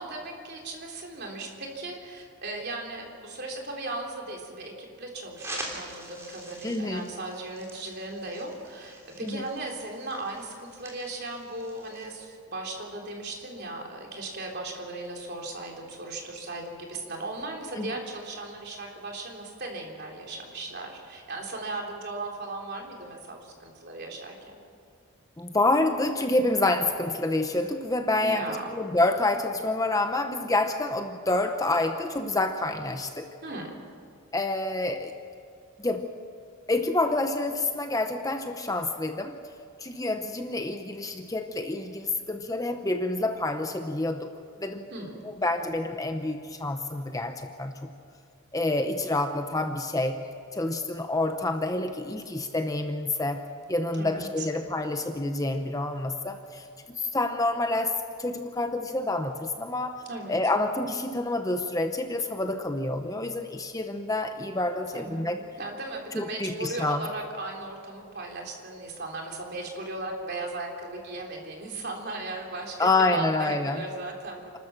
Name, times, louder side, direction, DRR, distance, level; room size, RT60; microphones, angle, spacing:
voice 1, 0.0-24.6 28.2-28.7 33.4-33.7 44.9-45.1 53.9-54.5 60.1-60.4 64.9-65.3 65.6-74.6, right 2 dB, 50° right, 0 dB, 3.5 m, -37 dB
sound 1, 5.4-12.2, right 1 dB, 15° right, 3.2 m, -44 dB
voice 2, 6.6-7.1 9.2-9.4 17.7-18.0 25.4-28.4 28.7-33.3 34.3-35.1 35.8-36.1 36.7-39.4 39.8-44.3 44.6-44.8 45.2-47.9 48.5-50.2 50.5-53.4 53.7-65.4 66.1-67.1 72.8-73.8, left 2 dB, 15° left, 6 dB, 0.7 m, -28 dB
28.0 x 13.0 x 7.4 m, 2.3 s
head